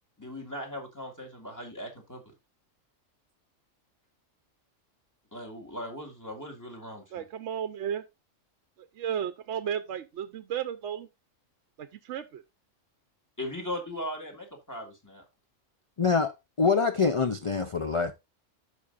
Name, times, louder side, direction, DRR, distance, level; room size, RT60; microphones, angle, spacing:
voice 1, 0.2-2.2 5.3-7.2 13.4-15.2, left 1 dB, 15° left, 2.1 m, -38 dB
voice 2, 7.1-8.0 8.8-11.1 11.8-12.4, right 9 dB, 65° right, 0.9 m, -34 dB
voice 3, 16.0-18.1, left 5 dB, 55° left, 0.3 m, -25 dB
13.5 x 5.1 x 2.5 m
omnidirectional pair, 1.3 m